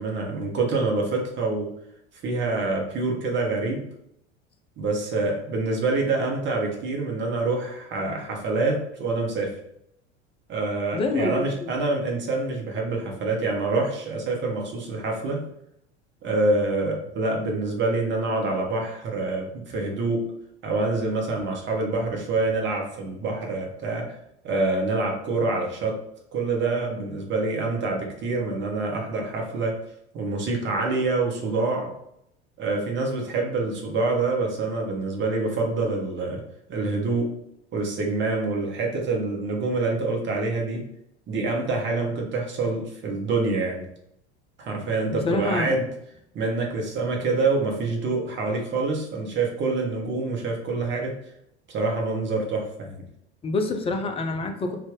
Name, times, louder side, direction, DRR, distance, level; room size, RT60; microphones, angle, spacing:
voice 1, 0.0-1.7 2.2-3.8 4.8-9.6 10.5-15.4 16.2-20.3 20.6-24.1 24.4-26.0 26.3-29.8 30.1-31.9 32.6-36.4 36.7-37.3 37.7-40.8 41.3-43.8 44.6-45.9 46.3-51.2 51.7-53.0, right 3 dB, 30° right, 0 dB, 1.1 m, -26 dB
voice 2, 10.9-11.7 45.1-45.8 53.4-54.8, left 3 dB, 15° left, 5 dB, 0.4 m, -27 dB
3.5 x 2.5 x 3.7 m, 0.77 s
figure-of-eight pair, 70°, 35 cm